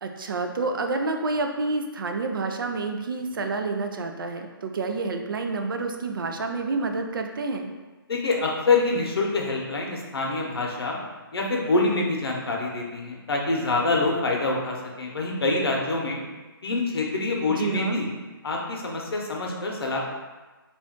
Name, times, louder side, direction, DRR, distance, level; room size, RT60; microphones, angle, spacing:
voice 1, 0.0-7.7 17.5-18.0, right 3 dB, 65° right, 4 dB, 0.4 m, -29 dB
voice 2, 8.1-11.0 11.3-16.2 16.6-18.1 18.4-20.0, left 3 dB, 90° left, -1 dB, 0.8 m, -26 dB
2.5 x 2.3 x 3.6 m, 1.2 s
hypercardioid pair, 175°, 12 cm